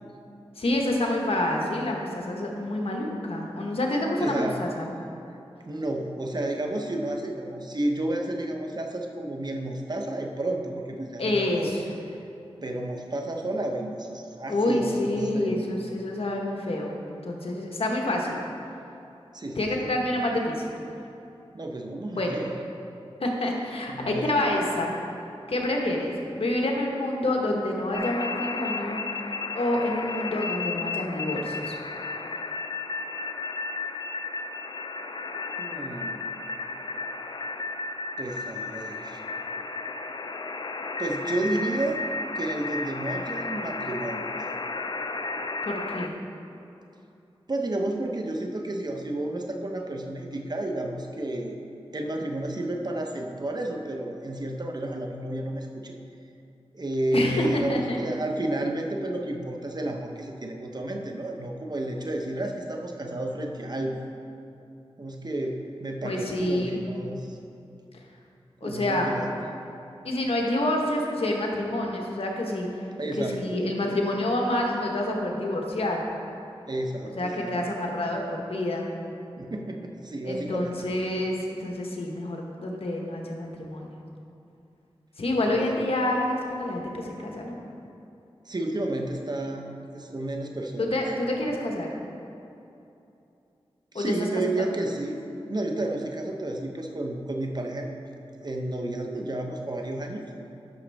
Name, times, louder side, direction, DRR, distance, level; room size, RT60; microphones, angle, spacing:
voice 1, 0.6-4.9 11.2-11.8 14.5-16.9 17.2-18.4 19.6-20.7 22.1-22.4 23.2-24.9 25.5-29.0 29.5-31.7 45.6-46.1 57.1-58.0 66.0-66.8 68.6-69.1 70.0-72.7 73.2-76.0 77.0-78.9 80.2-83.9 85.2-87.6 90.8-91.9 93.9-94.1, left 1 dB, 70° left, 0 dB, 1.2 m, -27 dB
voice 2, 4.2-4.6 5.7-11.7 12.1-12.2 12.6-15.6 19.3-19.9 21.5-22.5 23.9-24.3 35.6-36.3 38.2-39.2 41.0-42.0 42.3-44.2 47.5-51.6 51.9-55.9 56.7-64.0 65.0-67.4 68.6-69.5 73.0-73.7 76.7-77.7 79.4-80.9 85.4-85.7 88.5-90.9 93.9-95.2 95.5-97.9 98.4-100.3, right 1 dB, 40° right, 2 dB, 0.8 m, -31 dB
sound 1, 27.9-46.1, left 3 dB, 45° left, 0.4 m, -33 dB
10.5 x 6.3 x 3.5 m, 2.7 s
cardioid pair, 55°, 10 cm